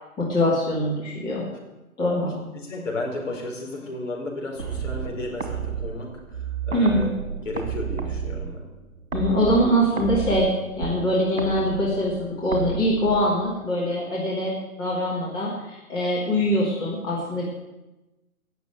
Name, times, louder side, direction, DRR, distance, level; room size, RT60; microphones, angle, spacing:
voice 1, 0.2-1.5 2.0-2.5 6.7-7.1 9.1-10.5 10.8-14.5 14.8-17.5, equal, 10° left, -6 dB, 2.4 m, -23 dB
voice 2, 2.5-7.1 7.4-8.6, left 2 dB, 55° left, 0 dB, 4.9 m, -33 dB
sound 1, 4.6-13.6, right 6 dB, 55° right, 2.7 m, -32 dB
17.0 x 7.2 x 9.1 m, 1.0 s
figure-of-eight pair, 150°, 44 cm